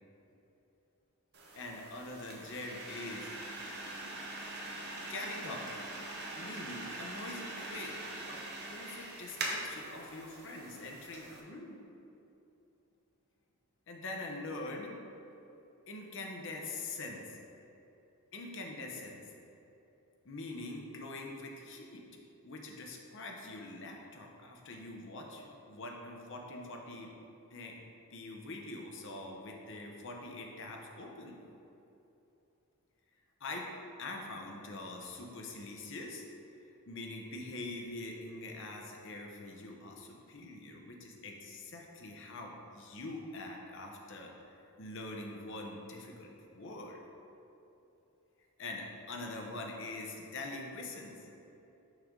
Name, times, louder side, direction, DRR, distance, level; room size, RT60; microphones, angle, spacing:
sound 1, 1.3-11.4, right 2 dB, 50° right, 0.8 m, -43 dB
voice 1, 1.5-3.4 5.1-5.7 6.3-8.0 8.3-8.4 8.7-11.8 13.9-15.0 15.9-17.4 18.3-19.2 20.2-22.1 22.4-27.1 27.5-27.8 28.1-31.4 33.4-33.7 34.0-36.2 36.9-47.0 48.6-51.3, left 2 dB, 55° left, 1 dB, 0.8 m, -44 dB
6.4 x 5.1 x 3.7 m, 2.9 s
head